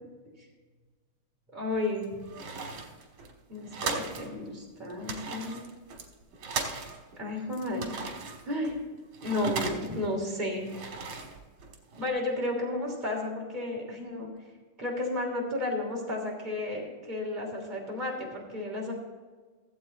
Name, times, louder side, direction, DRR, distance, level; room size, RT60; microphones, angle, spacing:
voice 1, 1.5-2.1 3.5-5.6 7.2-8.0 8.4-8.8 9.2-10.7 12.0-14.3 14.8-18.9, left 2 dB, 20° right, -3 dB, 3.1 m, -32 dB
sound 1, 1.7-4.3 4.6-4.7 4.9-7.2 7.5-10.1 10.5-12.1, right 4 dB, 80° right, 2.3 m, -37 dB
16.0 x 8.1 x 4.1 m, 1.4 s
omnidirectional pair, 2.3 m